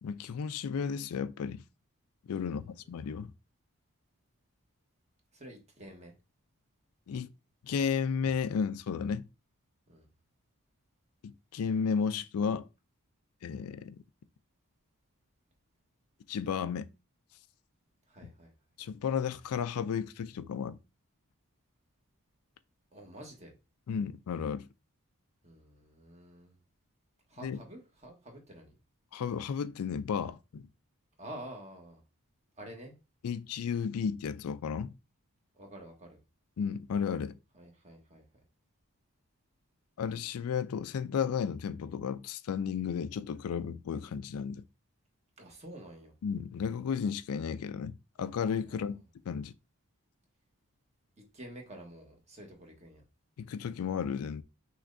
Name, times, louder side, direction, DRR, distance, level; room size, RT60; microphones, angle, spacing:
voice 1, 0.0-1.6 2.3-3.3 7.1-7.3 7.6-9.3 11.2-12.7 13.4-14.0 16.3-16.9 18.8-20.8 23.9-24.7 27.4-27.6 29.1-30.7 33.2-34.9 36.6-37.4 40.0-44.6 46.2-49.0 49.3-49.5 53.4-54.4, left 6 dB, 75° left, 0.4 m, -33 dB
voice 2, 2.4-3.0 5.3-6.1 9.9-10.1 18.1-18.5 22.9-23.5 25.4-26.6 27.3-28.8 31.2-32.0 32.5-32.9 35.5-36.2 37.5-38.2 45.4-46.1 48.7-49.0 51.3-53.0, right 1 dB, 30° right, 1.2 m, -49 dB
5.9 x 3.2 x 2.6 m
head